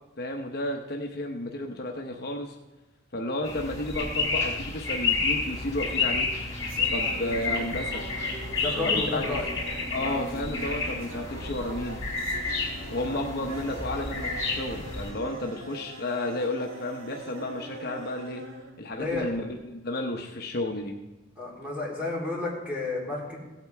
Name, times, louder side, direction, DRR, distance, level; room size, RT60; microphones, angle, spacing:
voice 1, 0.2-2.6 3.1-6.3 6.9-8.1 8.8-9.4 9.9-12.0 12.9-18.4 18.8-19.5 19.7-21.0, left 1 dB, 50° left, 2 dB, 0.8 m, -32 dB
sound 1, 3.4-15.1, left 4 dB, 15° left, 3.4 m, -30 dB
sound 2, 6.3-19.6, right 1 dB, 80° right, 1.3 m, -43 dB
voice 2, 8.6-9.5 10.0-10.3 13.1-13.2 18.9-19.3 21.3-23.4, left 2 dB, 5° right, -5 dB, 3.3 m, -32 dB
16.5 x 8.7 x 3.5 m, 1.1 s
head